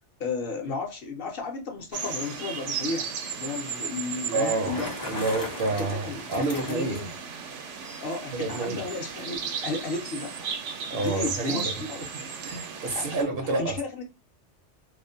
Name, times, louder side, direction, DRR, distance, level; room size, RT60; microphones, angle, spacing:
voice 1, 0.2-4.9 5.7-7.1 8.0-10.5 10.9-12.0 12.9-13.2 13.6-14.0, left 3 dB, 60° left, 0.7 m, -33 dB
sound 1, 1.9-13.2, right 6 dB, 90° right, 0.9 m, -35 dB
voice 2, 4.3-4.8 5.1-7.0 8.3-8.8 10.9-11.7 12.4-13.8, right 2 dB, 65° right, 0.7 m, -28 dB
Bicycle, 4.4-7.3, left 2 dB, 25° left, 0.4 m, -38 dB
2.4 x 2.1 x 2.6 m
omnidirectional pair, 1.2 m